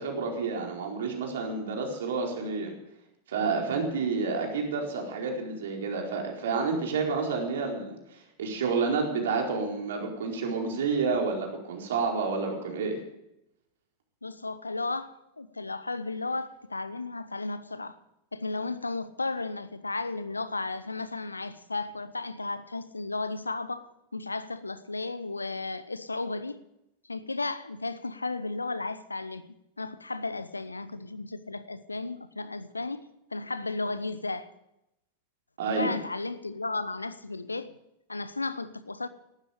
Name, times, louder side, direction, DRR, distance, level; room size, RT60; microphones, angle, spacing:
voice 1, 0.0-2.7 3.3-13.0 35.6-35.9, right 4 dB, 60° right, 4.4 m, -29 dB
voice 2, 14.2-18.0 18.3-26.6 27.1-29.5 29.8-33.0 33.3-34.5 35.8-37.7 38.1-39.1, left 3 dB, 80° left, 0.9 m, -34 dB
18.0 x 12.5 x 5.1 m
figure-of-eight pair, 90°, 0 cm